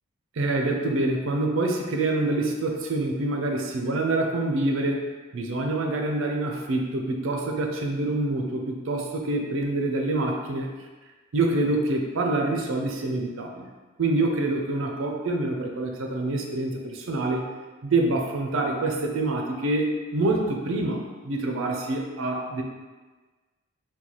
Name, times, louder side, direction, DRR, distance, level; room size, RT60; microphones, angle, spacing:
voice 1, 0.4-10.7 11.3-13.7 14.0-17.4 17.8-22.6, right 2 dB, 60° right, 2 dB, 0.4 m, -26 dB
3.8 x 2.2 x 3.0 m, 1.3 s
head